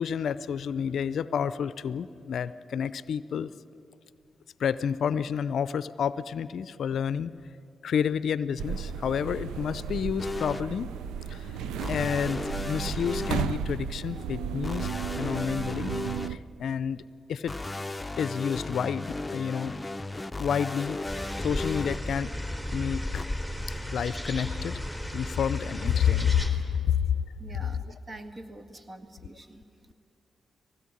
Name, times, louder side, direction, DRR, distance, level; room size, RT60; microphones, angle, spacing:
voice 1, 0.0-3.5 4.6-7.3 7.8-10.9 11.3-11.6 11.9-14.9 15.2-16.0 16.3-17.0 17.3-17.6 18.2-19.8 20.4-21.0 21.4-22.3 22.7-23.3 23.9-27.1, left 8 dB, 70° left, 16 dB, 0.5 m, -29 dB
sound 1, 8.6-16.4, right 7 dB, 80° right, 0.6 m, -34 dB
sound 2, 10.2-10.6 11.8-13.4 14.6-16.3 17.5-22.0 23.2-23.3, left 2 dB, 20° left, 0.7 m, -35 dB
sound 3, 21.0-26.5, left 1 dB, 10° right, 3.4 m, -34 dB
voice 2, 27.4-29.9, right 1 dB, 40° right, 7 dB, 2.0 m, -46 dB
19.5 x 17.0 x 9.9 m, 2.6 s
hypercardioid pair, 40°, 0 cm